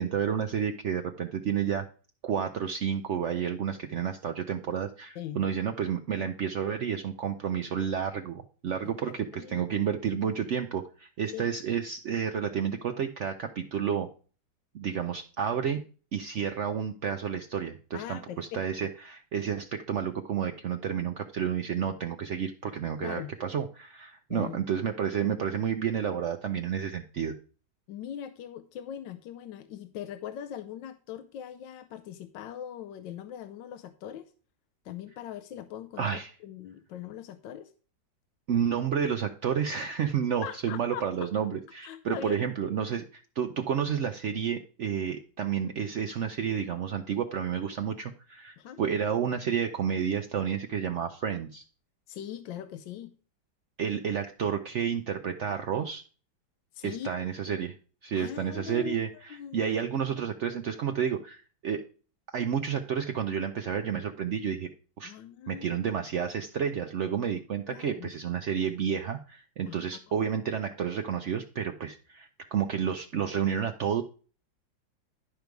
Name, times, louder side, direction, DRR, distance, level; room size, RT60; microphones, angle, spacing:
voice 1, 0.0-1.9 2.2-14.1 14.7-15.8 16.1-27.3 36.0-36.3 38.5-51.6 53.8-56.0 56.8-57.8 58.0-61.8 62.3-64.7 65.0-65.1 65.5-74.0, right 8 dB, 85° right, 7 dB, 0.6 m, -30 dB
voice 2, 17.9-18.9 23.0-23.3 24.3-24.6 27.9-34.3 34.8-37.7 40.4-41.3 41.8-42.4 48.6-48.8 52.1-53.1 56.7-57.3 58.2-58.9 59.3-59.8 65.0-65.9 67.7-68.1 69.7-69.8, left 10 dB, 85° left, 10 dB, 1.4 m, -41 dB
11.5 x 5.2 x 4.7 m, 0.39 s
omnidirectional pair, 2.0 m